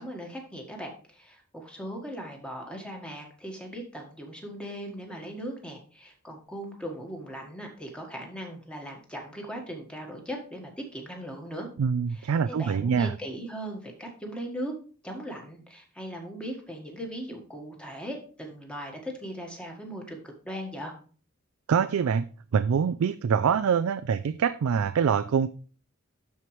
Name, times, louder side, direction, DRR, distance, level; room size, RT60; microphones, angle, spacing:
voice 1, 0.0-11.7 12.1-14.7 15.0-20.9, equal, 5° left, 1 dB, 1.5 m, -39 dB
voice 2, 11.8-13.1 21.7-22.3 22.5-25.5, right 6 dB, 80° right, 12 dB, 0.4 m, -24 dB
12.5 x 4.6 x 3.2 m, 0.40 s
head